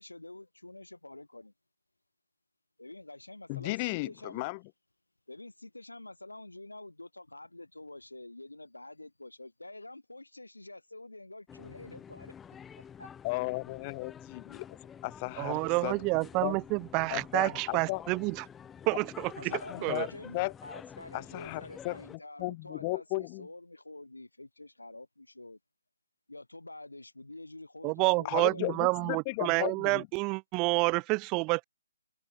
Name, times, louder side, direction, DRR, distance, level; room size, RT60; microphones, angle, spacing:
voice 1, 0.0-1.5 2.8-4.5 5.3-12.3 12.8-13.1 19.3-25.6 26.3-28.8, left 2 dB, 85° left, 3.0 m, -47 dB
voice 2, 3.5-4.6 13.2-15.9 16.4-16.6 17.1-18.0 19.7-20.5 21.1-22.0 22.4-23.5 28.2-30.1, left 26 dB, 25° left, 0.8 m, -35 dB
sound 1, 11.5-22.2, left 8 dB, 10° left, 1.2 m, -49 dB
voice 3, 15.4-18.4 18.9-19.5 19.8-20.1 27.8-31.6, right 27 dB, 25° right, 0.8 m, -29 dB
figure-of-eight pair, 140°, 0 cm